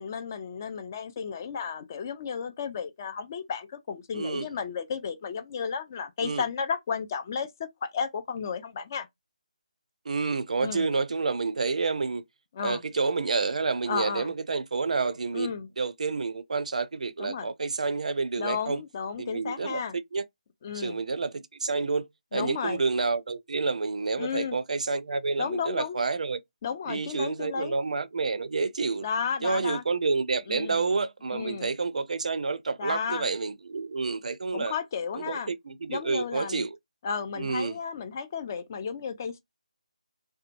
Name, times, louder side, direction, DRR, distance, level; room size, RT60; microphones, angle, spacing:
voice 1, 0.0-9.1 10.6-10.9 12.5-12.8 13.9-14.3 15.3-15.7 17.2-17.5 18.4-19.9 20.6-21.0 22.3-22.8 24.2-24.6 25.4-26.0 26.6-27.8 29.0-29.8 30.5-30.8 31.3-31.7 32.8-33.3 34.5-35.5 35.9-36.6 37.0-39.4, left 6 dB, 25° left, 0.3 m, -33 dB
voice 2, 4.1-4.5 6.2-6.4 10.1-12.2 12.6-18.8 19.2-20.2 20.7-26.4 26.9-29.1 29.4-34.7 35.2-36.8 37.4-37.8, right 4 dB, 55° right, 0.4 m, -29 dB
2.7 x 2.1 x 2.5 m
figure-of-eight pair, 160°, 4 cm